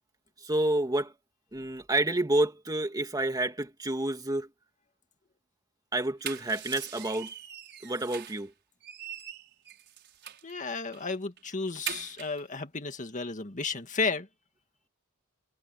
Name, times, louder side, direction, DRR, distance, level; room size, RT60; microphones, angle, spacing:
voice 1, 0.4-1.1 1.5-4.5 5.9-7.3 7.8-8.5, right 1 dB, 20° right, 2.4 m, -29 dB
sound 1, 6.0-8.5 8.8-10.5 10.9-11.1 11.4-12.4, right 10 dB, 55° right, 6.6 m, -42 dB
voice 2, 10.4-14.3, left 4 dB, 35° left, 2.0 m, -33 dB
head